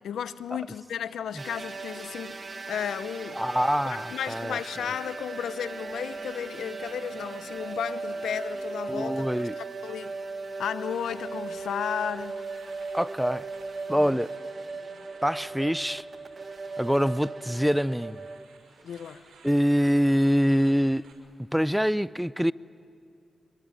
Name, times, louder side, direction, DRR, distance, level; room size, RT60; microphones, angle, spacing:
voice 1, 0.0-3.4 3.9-9.2 9.6-10.1 10.6-12.4 13.9-14.1 14.8-15.0 18.8-19.2, left 8 dB, 90° left, 0.7 m, -34 dB
sound 1, 1.3-9.3, right 1 dB, 20° right, 2.0 m, -52 dB
sound 2, 1.4-18.5, right 3 dB, 45° right, 1.7 m, -37 dB
sound 3, 1.5-21.1, right 4 dB, 85° right, 5.8 m, -57 dB
voice 2, 3.4-4.6 8.9-9.5 12.9-13.5 13.9-14.3 15.2-16.1 16.8-18.2 19.4-21.1 21.5-22.5, equal, ahead, 0.6 m, -25 dB
26.0 x 22.5 x 9.9 m
cardioid pair, 50°, 0 cm